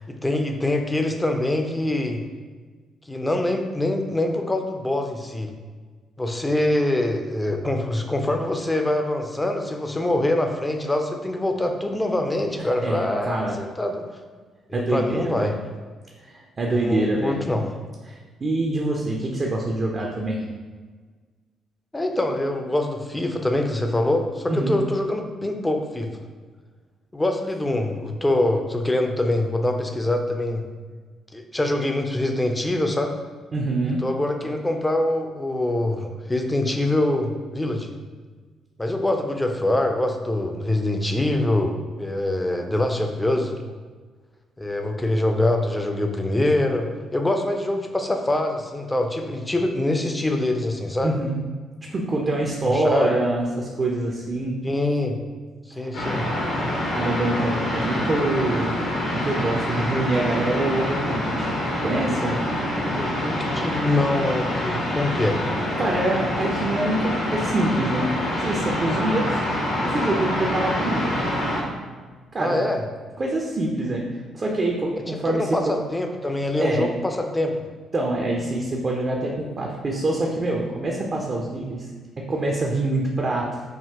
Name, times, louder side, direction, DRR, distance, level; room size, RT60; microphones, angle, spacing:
voice 1, 0.1-2.2 3.1-5.5 6.2-14.1 14.7-15.6 16.7-17.7 21.9-26.1 27.1-30.6 31.3-33.2 34.0-37.9 38.8-43.5 44.6-46.9 47.1-51.1 52.6-53.2 54.6-55.1 55.7-56.2 62.8-65.4 72.4-72.8 75.1-77.6, left 1 dB, 15° left, 4 dB, 0.5 m, -24 dB
voice 2, 12.8-13.5 14.7-15.5 16.2-17.3 18.1-20.4 24.5-24.8 33.5-34.0 51.0-51.3 51.9-54.5 55.7-55.9 56.9-58.7 59.1-61.5 61.8-62.4 65.8-68.1 68.4-69.4 69.8-71.1 72.3-72.6 73.2-74.0 74.3-75.6 76.6-76.9 77.9-81.8 82.3-83.6, right 2 dB, 35° right, -1 dB, 0.5 m, -25 dB
sound 1, 55.9-71.6, left 1 dB, 60° left, 1.0 m, -26 dB
4.8 x 2.8 x 2.8 m, 1.4 s
figure-of-eight pair, 45°, 0 cm